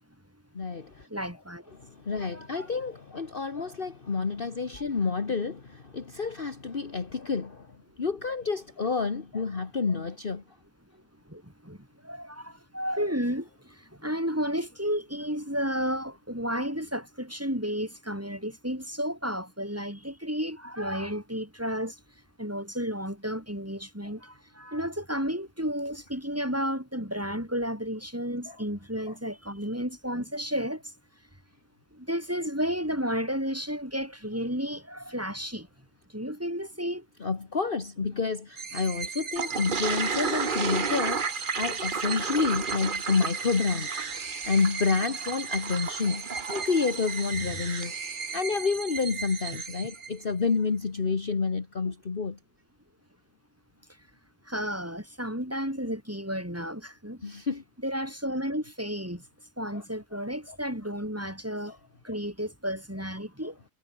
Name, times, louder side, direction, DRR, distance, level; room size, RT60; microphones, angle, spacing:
voice 1, 0.5-1.1 1.7-10.4 28.5-28.6 29.1-29.2 37.2-48.0 48.3-52.4 57.2-57.6 59.7-59.8 60.5-60.6 61.7-61.8 62.1-62.2 63.4-63.5, left 4 dB, 40° left, 1.7 m, -29 dB
voice 2, 1.1-1.6 2.3-2.7 11.3-11.8 12.0-13.5 14.0-21.9 22.4-30.8 32.0-35.7 36.1-37.0 42.3-42.4 51.8-51.9 54.5-57.2 57.8-59.2 59.6-61.7 62.0-63.5, equal, 10° right, 7.6 m, -32 dB
sound 1, 38.6-50.5, right 5 dB, 75° right, 2.3 m, -37 dB
Toilet flush, 39.4-47.9, right 5 dB, 40° right, 1.3 m, -33 dB
omnidirectional pair, 1.4 m